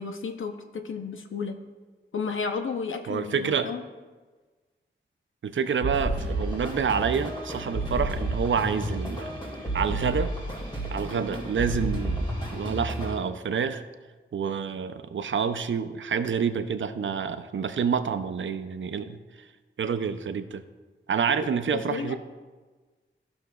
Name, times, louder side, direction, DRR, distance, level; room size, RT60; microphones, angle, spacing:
voice 1, 0.0-1.6 2.1-3.8 21.4-22.2, left 5 dB, 80° left, 6 dB, 0.6 m, -33 dB
voice 2, 3.1-3.7 5.4-9.3 9.7-10.3 10.9-13.8 14.3-19.5 19.8-20.6 21.1-22.2, right 6 dB, 70° right, 11 dB, 0.5 m, -28 dB
sound 1, 5.8-13.1, right 1 dB, 25° left, 2.1 m, -31 dB
13.5 x 6.1 x 2.2 m, 1.3 s
wide cardioid pair, 105°, 20 cm